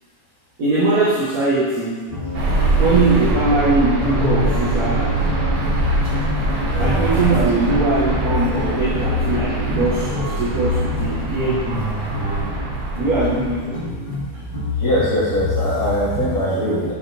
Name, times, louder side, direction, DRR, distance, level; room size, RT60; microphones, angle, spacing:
voice 1, 0.6-2.0 2.8-5.2 6.8-11.9 13.0-13.8 16.5-16.9, right 2 dB, 55° right, -10 dB, 2.0 m, -21 dB
sound 1, 2.1-16.3, left 2 dB, 30° left, 2.5 m, -26 dB
sound 2, 2.3-13.9, right 2 dB, 35° right, 1.6 m, -23 dB
voice 2, 6.7-7.4 14.8-16.9, equal, 45° left, -12 dB, 2.5 m, -22 dB
10.5 x 5.4 x 3.5 m, 1.4 s
omnidirectional pair, 2.0 m